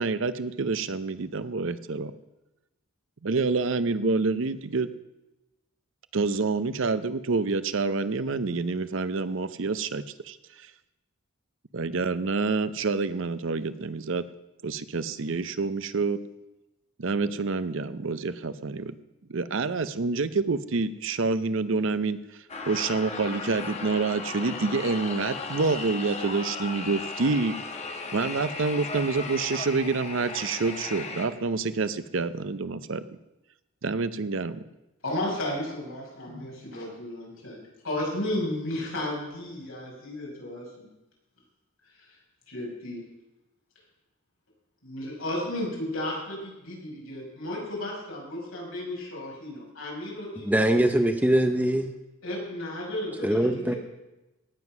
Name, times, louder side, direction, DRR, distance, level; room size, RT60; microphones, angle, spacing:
voice 1, 0.0-2.1 3.2-4.9 6.1-10.7 11.7-14.3 14.6-16.2 17.0-18.9 19.3-22.2 22.7-27.6 28.1-33.1 33.8-34.6, right 4 dB, 60° right, 13 dB, 0.6 m, -27 dB
sound 1, 22.5-31.3, left 3 dB, 30° left, 1.2 m, -36 dB
voice 2, 35.0-40.9 42.0-42.1 42.5-43.0 44.8-50.8 52.2-53.8, left 1 dB, 75° left, -3 dB, 5.8 m, -34 dB
voice 3, 50.4-51.9 53.2-53.7, right 1 dB, 10° right, 7 dB, 0.6 m, -22 dB
17.5 x 7.5 x 6.0 m, 1.0 s
head